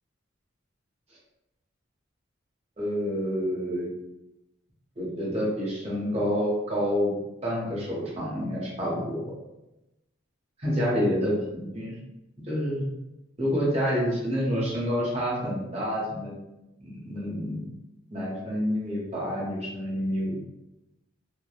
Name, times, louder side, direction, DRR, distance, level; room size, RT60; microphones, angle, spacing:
voice 1, 2.8-3.9 5.0-7.1 7.4-9.2 10.6-11.9 12.5-12.9 13.4-16.3 16.8-17.6 18.1-20.4, equal, 30° right, -5 dB, 0.8 m, -28 dB
2.9 x 2.1 x 2.4 m, 0.95 s
head